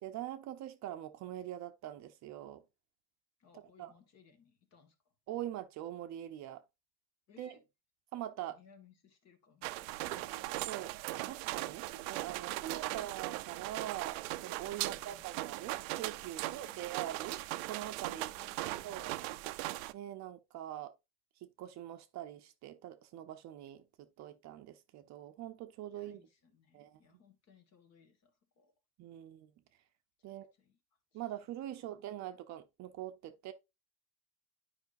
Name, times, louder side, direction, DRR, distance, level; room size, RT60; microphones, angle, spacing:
voice 1, 0.0-2.6 3.8-3.9 5.3-6.6 7.4-7.6 8.1-8.6 10.7-17.4 17.7-18.3 18.8-19.1 19.9-20.9 21.4-26.3 26.7-27.0 29.0-29.5 30.2-30.5 31.1-33.5, right 12 dB, 45° right, 0.7 m, -43 dB
voice 2, 3.4-5.1 7.3-7.6 8.5-10.4 12.5-13.0 14.8-15.3 16.4-16.9 18.1-19.8 25.9-28.7 30.2-30.8 31.1-31.2, left 6 dB, 40° left, 1.7 m, -64 dB
sound 1, 9.6-19.9, right 18 dB, 75° right, 0.6 m, -39 dB
10.5 x 5.1 x 2.6 m
cardioid pair, 145°, 41 cm